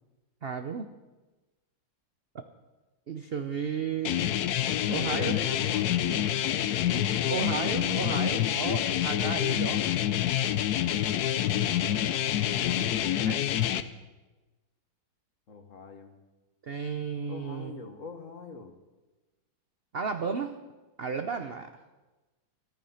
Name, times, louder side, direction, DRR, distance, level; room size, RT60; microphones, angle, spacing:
voice 1, 0.4-0.9 3.1-4.1 4.9-5.3 7.3-9.8 13.2-13.4 16.6-17.8 19.9-20.6 21.0-21.7, right 6 dB, 70° right, 8 dB, 0.5 m, -33 dB
sound 1, 4.1-13.8, left 11 dB, 65° left, 1.0 m, -27 dB
voice 2, 4.9-8.0 15.5-16.1 17.3-18.7, left 3 dB, 45° left, 6 dB, 1.6 m, -42 dB
14.5 x 14.0 x 5.7 m, 1.2 s
omnidirectional pair, 2.1 m